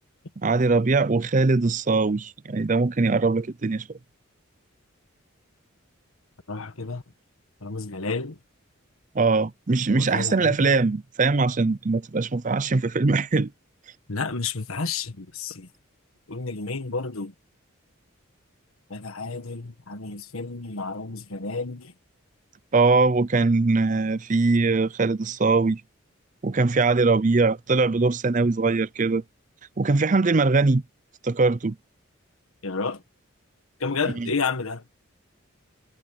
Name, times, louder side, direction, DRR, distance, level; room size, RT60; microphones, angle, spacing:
voice 1, 0.4-4.0 9.1-13.5 22.7-25.8 26.4-29.2 29.8-30.8 31.2-31.8 34.2-34.3, right 3 dB, 35° right, 0.5 m, -21 dB
voice 2, 6.5-7.0 7.6-8.4 9.9-10.7 14.1-15.7 16.3-17.3 18.9-21.9 32.6-33.0 33.8-34.8, left 4 dB, 85° left, 1.5 m, -31 dB
head